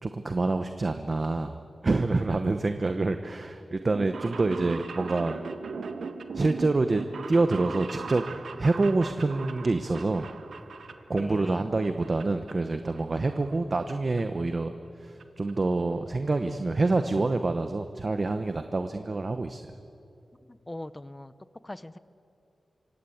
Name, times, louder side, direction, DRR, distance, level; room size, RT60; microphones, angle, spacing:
voice 1, 0.0-1.6 1.8-5.4 6.3-8.2 8.6-10.3 11.1-14.7 15.0-19.6, right 3 dB, 35° right, 8 dB, 0.9 m, -27 dB
sound 1, 3.8-11.5 11.8-12.5 12.8-13.9 14.2-14.3 15.2-15.3 15.5-15.6 15.8-15.9 16.2-16.5 16.9-17.0 17.2-17.3, right 4 dB, 80° right, 1.6 m, -39 dB
voice 2, 11.2-11.7 20.5-21.3 21.6-22.0, left 1 dB, 15° left, 14 dB, 0.8 m, -40 dB
27.0 x 24.5 x 8.6 m, 2.6 s
wide cardioid pair, 145°, 0 cm